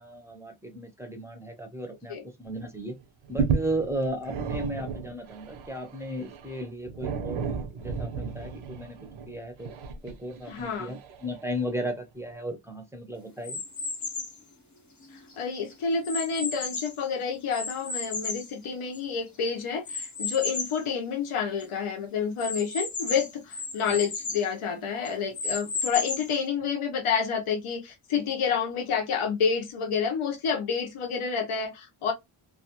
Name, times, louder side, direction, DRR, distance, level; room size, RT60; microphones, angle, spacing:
voice 1, 0.0-3.0 3.3-7.4 7.7-9.0 9.3-9.7 10.0-13.6 23.9-24.0, right 1 dB, 5° right, 0.5 m, -35 dB
sound 1, 2.5-2.7 3.0-11.7 12.3-12.4, right 6 dB, 75° right, 0.6 m, -33 dB
voice 2, 10.5-10.9 15.1-32.1, left 6 dB, 80° left, 0.8 m, -29 dB
sound 2, 13.4-14.4 15.0-17.0 17.5-19.2 19.8-20.8 21.3-21.4 21.6-21.7 22.4-24.5 25.0-26.4, left 4 dB, 35° left, 0.8 m, -34 dB
2.3 x 2.3 x 2.8 m
wide cardioid pair, 145°, 49 cm